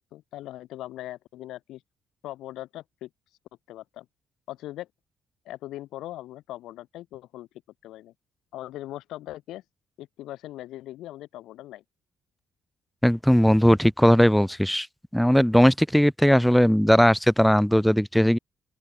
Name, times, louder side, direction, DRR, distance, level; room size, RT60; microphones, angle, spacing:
voice 1, 0.1-1.8 2.2-3.1 3.7-4.1 4.5-4.9 5.4-7.5 7.8-8.1 8.5-9.6 10.0-11.8, left 15 dB, 90° left, 6.4 m, -40 dB
voice 2, 13.0-14.9 15.1-18.4, equal, ahead, 3.5 m, -18 dB
open air
cardioid pair, 90°, 0 cm